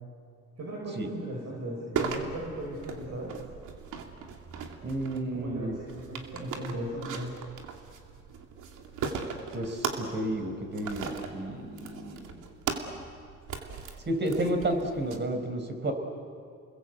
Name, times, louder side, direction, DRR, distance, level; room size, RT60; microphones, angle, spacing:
voice 1, 0.6-3.4 5.3-7.4, right 1 dB, 60° right, -2 dB, 5.9 m, -37 dB
sound 1, 2.0-15.2, right 6 dB, 80° right, 2.5 m, -38 dB
voice 2, 4.8-5.8 9.5-12.3 14.0-15.9, right 1 dB, 35° right, 5 dB, 4.8 m, -31 dB
30.0 x 21.0 x 8.3 m, 2.3 s
cardioid pair, 90°, 30 cm